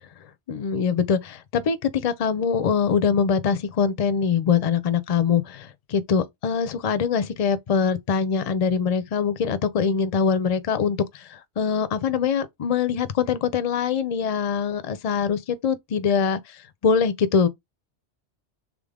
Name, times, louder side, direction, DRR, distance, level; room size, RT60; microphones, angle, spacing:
voice 1, 0.5-16.4 16.8-17.5, left 6 dB, 45° left, 0.5 m, -23 dB
3.7 x 3.6 x 3.6 m
omnidirectional pair, 1.2 m